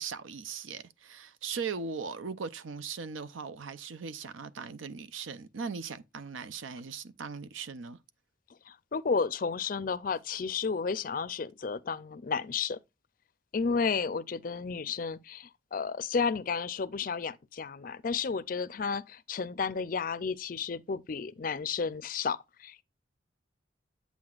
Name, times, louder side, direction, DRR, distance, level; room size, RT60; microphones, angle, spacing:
voice 1, 0.0-8.0, right 5 dB, 90° right, 0.6 m, -39 dB
voice 2, 8.7-12.8 13.5-22.8, left 5 dB, 45° left, 0.4 m, -32 dB
8.2 x 7.7 x 2.4 m
head